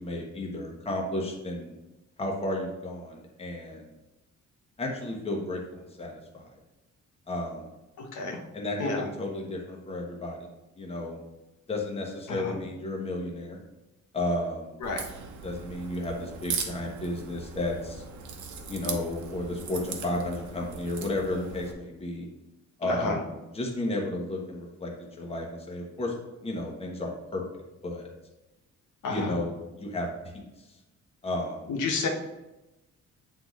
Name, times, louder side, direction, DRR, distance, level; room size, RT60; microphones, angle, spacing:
voice 1, 0.0-1.7 2.2-3.9 4.8-6.4 7.3-7.7 8.5-10.5 10.8-11.2 11.7-13.6 14.1-14.7 15.4-18.0 18.7-22.3 22.8-23.2 23.5-24.9 25.2-26.1 26.4-27.4 27.8-28.1 29.1-30.1 30.3-30.4 31.2-31.6, left 1 dB, 20° left, -1 dB, 1.0 m, -33 dB
voice 2, 8.0-8.4 8.8-9.1 12.3-12.6 14.8-15.0 22.8-23.2 29.0-29.3 31.7-32.1, left 3 dB, 85° left, 1 dB, 1.1 m, -30 dB
Crack, 14.8-21.7, right 6 dB, 75° right, 0.9 m, -39 dB
8.7 x 4.0 x 3.1 m, 1.0 s
cardioid pair, 160°, 29 cm